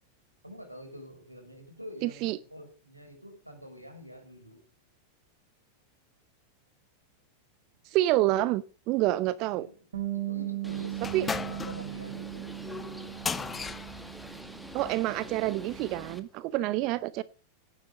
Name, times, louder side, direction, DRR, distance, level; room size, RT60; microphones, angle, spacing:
voice 1, 0.4-4.6 9.5-9.7 10.2-12.5 16.6-17.0, equal, 85° right, 5 dB, 5.9 m, -46 dB
voice 2, 2.0-2.4 7.8-9.7 11.1-11.3 14.7-17.2, right 16 dB, 40° right, 19 dB, 0.6 m, -28 dB
Bass guitar, 9.9-16.2, right 16 dB, 65° right, 3.2 m, -38 dB
Bird, 10.6-16.2, equal, ahead, 2.2 m, -46 dB
sound 1, 11.0-15.1, left 5 dB, 15° left, 1.3 m, -37 dB
17.5 x 9.9 x 5.2 m, 0.39 s
figure-of-eight pair, 90°, 0 cm